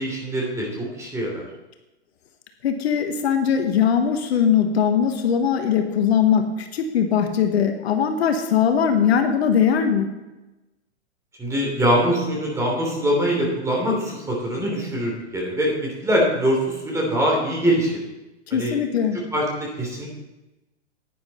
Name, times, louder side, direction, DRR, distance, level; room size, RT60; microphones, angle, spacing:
voice 1, 0.0-1.4 11.4-17.9 18.5-18.8 19.1-20.1, equal, 10° right, -2 dB, 3.1 m, -23 dB
voice 2, 2.6-10.1 18.5-19.2, left 7 dB, 65° left, 6 dB, 1.3 m, -20 dB
10.5 x 9.6 x 4.2 m, 1.0 s
hypercardioid pair, 135°, 34 cm